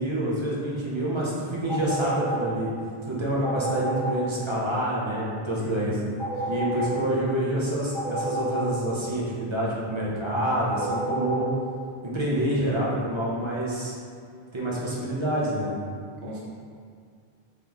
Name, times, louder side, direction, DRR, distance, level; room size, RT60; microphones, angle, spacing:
voice 1, 0.0-2.7 3.1-6.0 6.5-11.5 12.0-14.0 14.5-15.7, right 1 dB, 35° right, -7 dB, 0.7 m, -27 dB
sound 1, 1.7-2.5 3.4-4.2 6.2-7.0 7.9-8.7 10.7-11.5, right 1 dB, 60° right, 1.8 m, -29 dB
voice 2, 5.6-6.5 6.7-6.9 14.7-14.8 16.2-16.4, right 1 dB, 75° right, -5 dB, 1.1 m, -37 dB
3.6 x 3.0 x 3.6 m, 2.2 s
omnidirectional pair, 1.0 m